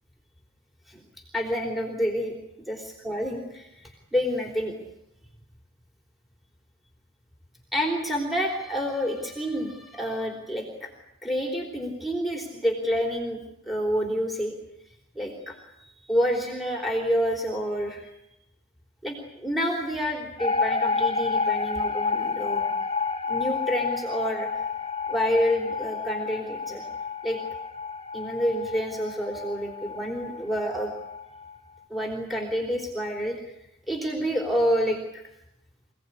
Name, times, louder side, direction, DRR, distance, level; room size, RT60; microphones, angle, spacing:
voice 1, 1.3-2.3 2.7-4.8 7.7-10.9 11.2-14.5 15.2-18.1 19.0-22.7 23.3-24.6 25.1-26.8 27.2-27.4 28.1-30.9 31.9-33.6 33.9-35.2, equal, ahead, 2 dB, 3.4 m, -28 dB
sound 1, 20.4-31.6, left 4 dB, 25° left, 2.1 m, -30 dB
27.0 x 17.5 x 9.9 m, 0.88 s
head